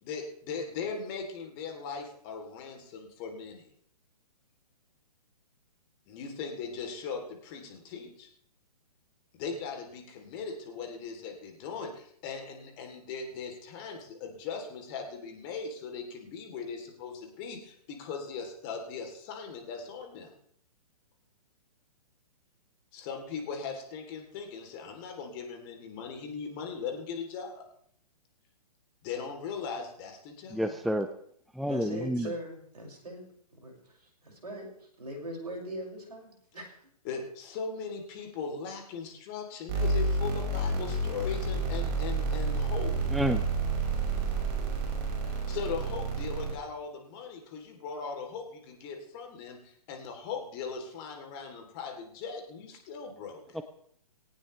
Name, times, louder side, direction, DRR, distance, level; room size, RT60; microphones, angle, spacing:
voice 1, 0.0-3.6 6.1-8.3 9.3-20.3 22.9-27.7 29.0-30.7 37.0-42.9 45.3-53.4, left 5 dB, 35° left, 3 dB, 3.5 m, -39 dB
voice 2, 30.5-31.1 31.5-32.3 43.1-43.4 53.5-53.6, equal, ahead, 9 dB, 0.5 m, -29 dB
voice 3, 31.7-33.3 33.6-33.8 34.2-34.7 35.0-36.8, right 1 dB, 80° right, 0 dB, 6.4 m, -40 dB
sound 1, 39.7-46.5, right 3 dB, 35° right, 5.8 m, -30 dB
19.5 x 18.0 x 3.4 m, 0.65 s
figure-of-eight pair, 125°, 20 cm